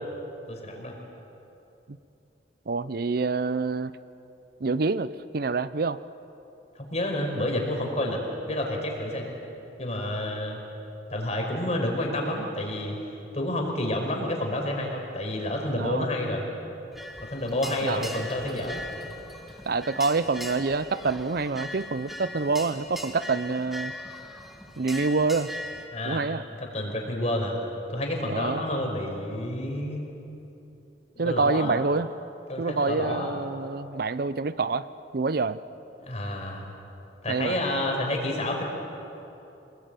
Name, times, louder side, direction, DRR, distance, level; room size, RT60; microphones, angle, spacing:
voice 1, 0.5-0.9 6.8-8.2 8.5-9.3 9.8-10.6 11.1-13.0 13.3-16.4 17.2-18.9 19.5-19.6 25.9-26.2 26.6-27.6 27.9-30.2 31.2-31.8 32.5-33.3 36.0-36.7 37.2-38.6, left 1 dB, 40° left, 1 dB, 5.0 m, -29 dB
voice 2, 2.7-4.0 4.6-6.0 15.7-16.1 17.8-18.1 19.7-23.9 24.8-25.5 26.1-26.4 28.2-28.7 31.2-32.1 32.6-34.9 35.1-35.6 37.3-37.6, right 4 dB, 55° right, 15 dB, 0.6 m, -27 dB
sound 1, 16.9-25.8, left 1 dB, ahead, 1.9 m, -40 dB
26.5 x 20.5 x 9.1 m, 3.0 s
head